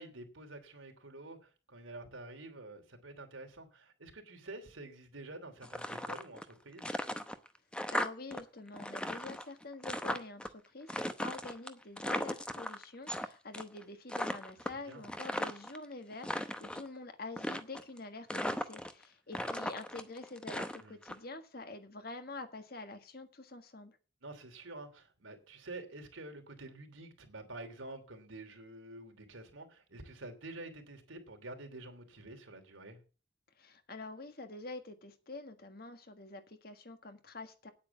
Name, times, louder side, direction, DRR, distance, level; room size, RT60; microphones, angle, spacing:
voice 1, 0.0-6.9 14.7-15.1 20.8-21.0 24.2-33.0, right 2 dB, 85° right, 3.1 m, -48 dB
sound 1, 5.6-6.5 6.8-8.4 8.7-10.5 10.9-13.3 13.5-13.8 14.1-15.8 16.1-16.9 17.4-18.0 18.3-19.0 19.3-21.1, left 1 dB, 5° left, 0.8 m, -37 dB
voice 2, 7.9-24.0 33.6-37.7, left 3 dB, 50° left, 1.6 m, -46 dB
9.7 x 8.5 x 7.0 m
head